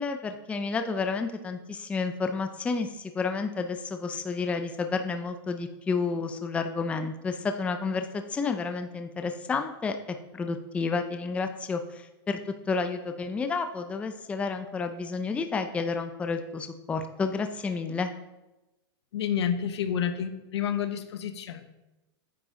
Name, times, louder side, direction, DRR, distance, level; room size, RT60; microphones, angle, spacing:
voice 1, 0.0-10.0 10.3-12.4 12.7-18.1, left 4 dB, 10° left, 7 dB, 0.5 m, -30 dB
voice 2, 19.1-21.6, left 8 dB, 90° left, 10 dB, 1.0 m, -29 dB
9.4 x 7.5 x 3.7 m, 1.0 s
supercardioid pair, 150°, 14 cm